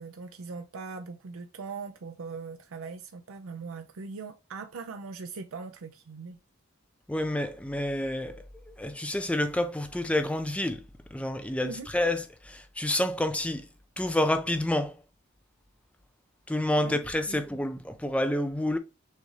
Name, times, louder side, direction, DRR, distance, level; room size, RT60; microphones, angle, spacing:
voice 1, 0.0-6.4 11.6-11.9 16.8-17.0 17.3-17.5, right 4 dB, 85° right, 0.5 m, -40 dB
voice 2, 7.1-8.4 8.8-10.8 11.1-13.7 14.0-14.9 16.5-18.8, left 1 dB, 5° left, 0.4 m, -28 dB
6.3 x 2.6 x 3.1 m
head